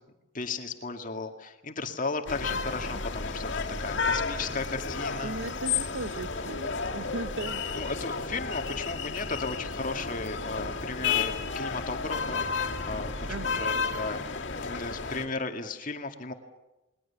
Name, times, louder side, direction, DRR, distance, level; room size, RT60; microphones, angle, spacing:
voice 1, 0.3-5.4 7.7-14.2 14.6-16.3, left 3 dB, 40° left, 5 dB, 2.1 m, -35 dB
sound 1, 2.3-15.3, left 5 dB, 60° left, 2.7 m, -32 dB
voice 2, 5.2-7.6 13.3-14.0, right 2 dB, 80° right, 13 dB, 1.0 m, -38 dB
29.0 x 21.0 x 7.2 m, 1.0 s
head